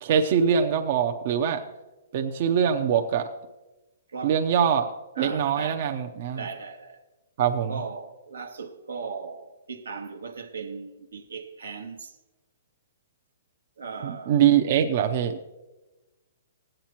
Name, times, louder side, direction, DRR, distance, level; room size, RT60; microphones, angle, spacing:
voice 1, 0.0-1.6 2.1-3.3 4.2-4.9 5.2-6.4 7.4-7.8 14.0-15.4, right 8 dB, 55° right, 0.6 m, -23 dB
voice 2, 4.1-4.4 5.2-6.0 6.3-7.0 7.7-12.1 13.8-14.4, right 5 dB, 90° right, 1.1 m, -38 dB
16.0 x 8.9 x 3.0 m
hypercardioid pair, 135°, 0 cm